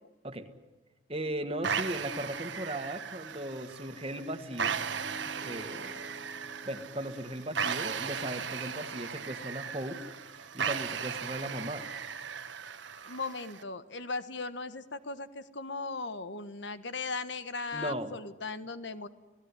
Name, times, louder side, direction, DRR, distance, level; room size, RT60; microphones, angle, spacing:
voice 1, 1.1-4.8 5.4-6.0 6.6-10.0 10.3-11.9 17.7-18.1, right 1 dB, 30° right, 8 dB, 1.7 m, -37 dB
sound 1, 1.6-13.6, right 6 dB, 75° right, 1.3 m, -37 dB
Piano, 3.9-12.0, equal, 20° left, 3.8 m, -53 dB
voice 2, 13.1-19.1, left 3 dB, 70° left, 12 dB, 1.3 m, -38 dB
29.5 x 18.0 x 9.8 m, 1.2 s
head